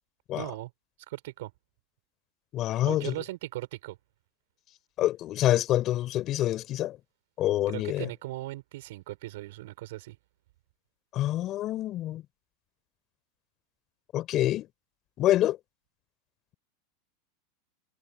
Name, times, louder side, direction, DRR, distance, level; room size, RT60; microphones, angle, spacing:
voice 1, 0.3-0.7 1.1-1.5 2.8-4.0 7.7-10.2, right 18 dB, 75° right, 6.8 m, -38 dB
voice 2, 2.5-3.1 5.0-7.0 7.4-8.1 11.1-12.2 14.1-14.7 15.2-15.6, left 14 dB, 40° left, 5.0 m, -26 dB
supercardioid pair, 130°, 0 cm